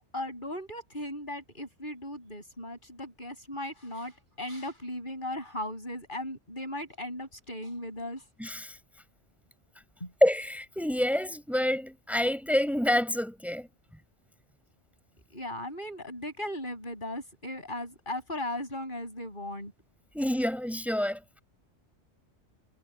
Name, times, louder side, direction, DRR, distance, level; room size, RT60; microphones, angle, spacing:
voice 1, 0.0-8.2 10.0-10.1 15.3-19.7, left 1 dB, 45° left, 7.5 m, -37 dB
voice 2, 8.4-8.8 10.2-13.7 20.1-21.2, left 1 dB, ahead, 5.6 m, -27 dB
omnidirectional pair, 1.2 m